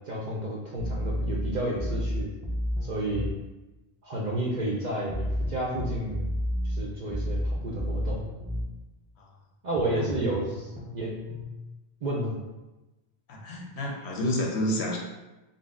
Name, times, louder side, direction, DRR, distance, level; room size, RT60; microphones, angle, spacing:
voice 1, 0.0-2.3 2.8-3.3 4.0-6.3 6.6-8.2 9.6-10.6 10.9-11.4 12.0-12.4, right 1 dB, 55° right, -3 dB, 0.6 m, -31 dB
sound 1, 0.8-3.4 5.1-8.7 9.8-11.4, equal, ahead, 0.3 m, -31 dB
voice 2, 9.9-10.3 13.3-15.0, left 1 dB, 75° left, -1 dB, 1.0 m, -30 dB
3.9 x 2.0 x 3.6 m, 1.1 s
omnidirectional pair, 1.1 m